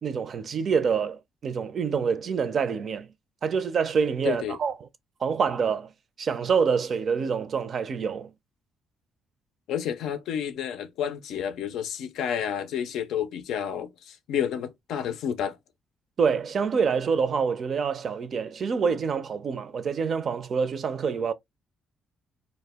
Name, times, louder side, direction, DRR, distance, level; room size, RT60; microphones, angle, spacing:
voice 1, 0.0-3.1 3.4-4.9 5.2-5.9 6.2-8.3 16.2-21.3, right 6 dB, 50° right, 0.4 m, -26 dB
voice 2, 4.2-4.6 9.7-15.6, left 9 dB, 85° left, 0.4 m, -30 dB
2.2 x 2.0 x 3.3 m
cardioid pair, 90°, 0 cm